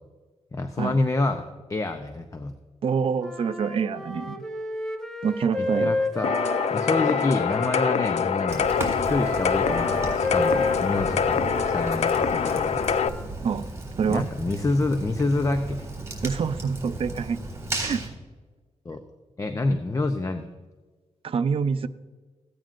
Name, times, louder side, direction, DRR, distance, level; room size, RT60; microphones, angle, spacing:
voice 1, 0.5-1.4 1.7-2.5 5.6-6.3 6.7-8.6 9.1-12.8 14.1-15.9 18.8-19.0 19.4-20.5, left 2 dB, 25° left, 7 dB, 0.7 m, -27 dB
voice 2, 2.8-4.4 5.2-6.0 13.4-13.7 14.0-14.3 16.2-17.4 17.8-18.1 21.2-21.9, right 6 dB, 55° right, 10 dB, 0.5 m, -26 dB
Wind instrument woodwind instrument, 3.2-7.8 8.4-13.2, left 1 dB, 5° left, 0.9 m, -32 dB
sound 1, 6.2-13.1, left 7 dB, 70° left, 0.5 m, -25 dB
Fire, 8.5-18.1, right 2 dB, 25° right, 3.7 m, -35 dB
15.5 x 9.1 x 2.5 m, 1.3 s
cardioid pair, 95°, 12 cm